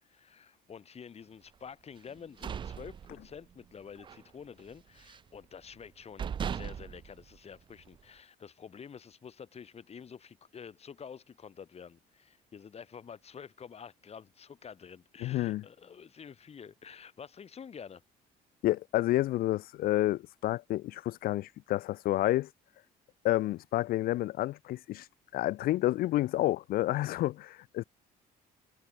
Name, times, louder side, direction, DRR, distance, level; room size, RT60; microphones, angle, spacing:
voice 1, 0.0-18.0, left 7 dB, 40° left, 3.8 m, -49 dB
sound 1, 2.1-3.7 4.0-4.3 4.6-5.4 5.8-5.9 6.2-8.0, right 7 dB, 30° right, 0.4 m, -39 dB
voice 2, 15.2-15.6 18.6-22.5 23.2-25.1 25.3-27.8, left 16 dB, 60° left, 0.4 m, -29 dB
cardioid pair, 110°, 17 cm